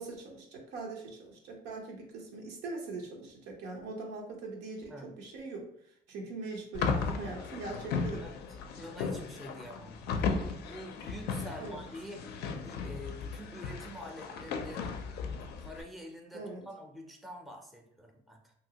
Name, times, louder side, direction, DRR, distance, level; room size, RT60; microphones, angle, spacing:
voice 1, 0.0-5.7 6.1-8.4 11.6-11.9 16.3-16.6, right 3 dB, 90° right, 1 dB, 0.7 m, -41 dB
sound 1, 6.7-15.8, left 5 dB, 75° left, 0.4 m, -36 dB
voice 2, 8.8-12.2 12.6-15.0 15.6-18.5, equal, ahead, 2 dB, 0.5 m, -46 dB
2.7 x 2.7 x 2.8 m, 0.69 s
cardioid pair, 110°, 17 cm